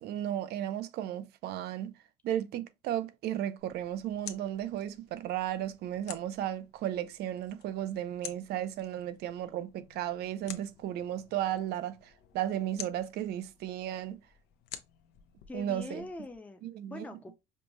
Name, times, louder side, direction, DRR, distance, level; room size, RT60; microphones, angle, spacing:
voice 1, 0.0-1.9 2.2-14.2 15.5-16.0 16.6-17.0, right 11 dB, 75° right, 0.5 m, -34 dB
sound 1, 3.6-16.4, left 10 dB, 85° left, 0.6 m, -51 dB
voice 2, 15.5-17.4, left 2 dB, 10° left, 0.5 m, -43 dB
5.3 x 2.1 x 3.0 m
cardioid pair, 110°, 17 cm